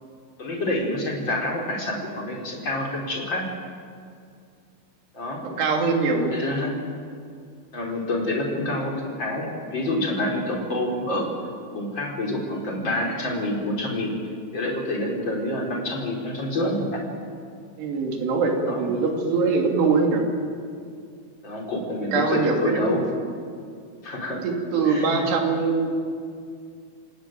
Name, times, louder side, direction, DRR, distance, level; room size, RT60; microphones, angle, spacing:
voice 1, 0.4-3.5 5.1-5.4 6.3-6.7 7.7-11.3 11.7-14.1 14.5-17.0 18.6-18.9 21.4-23.0 24.0-24.4 24.8-25.3, left 1 dB, 25° left, -1 dB, 4.5 m, -27 dB
voice 2, 5.4-6.3 17.8-20.3 22.0-22.9 24.3-26.0, right 4 dB, 60° right, 1 dB, 4.9 m, -23 dB
28.0 x 18.5 x 9.1 m, 2.3 s
omnidirectional pair, 5.5 m